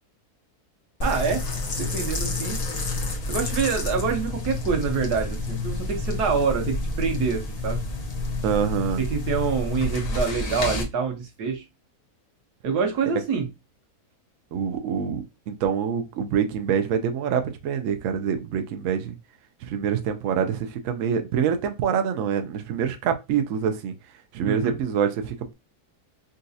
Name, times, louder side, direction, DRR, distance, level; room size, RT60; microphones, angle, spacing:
sound 1, 1.0-10.8, left 2 dB, 40° left, 0.6 m, -29 dB
voice 1, 1.0-1.4 1.8-2.6 3.3-7.8 9.0-11.6 12.6-13.5 24.4-24.8, right 5 dB, 85° right, 1.4 m, -26 dB
voice 2, 8.4-9.0 14.5-19.2 19.6-23.9 24.3-25.5, right 7 dB, 65° right, 0.8 m, -26 dB
4.0 x 2.4 x 2.6 m
omnidirectional pair, 1.7 m